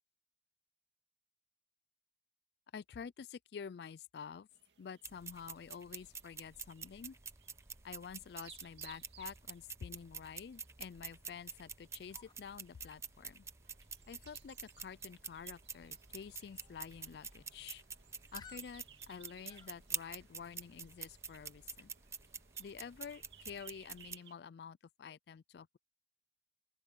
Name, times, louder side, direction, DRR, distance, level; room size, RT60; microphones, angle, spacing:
voice 1, 2.7-4.5 4.8-7.2 7.8-13.5 14.1-17.8 18.3-21.9 22.6-25.8, left 6 dB, 70° left, 0.3 m, -49 dB
sound 1, 4.5-24.4, right 9 dB, 90° right, 2.3 m, -64 dB
sound 2, 5.0-24.2, right 6 dB, 15° right, 0.8 m, -48 dB
sound 3, 12.1-20.2, left 5 dB, 25° left, 0.9 m, -63 dB
open air
head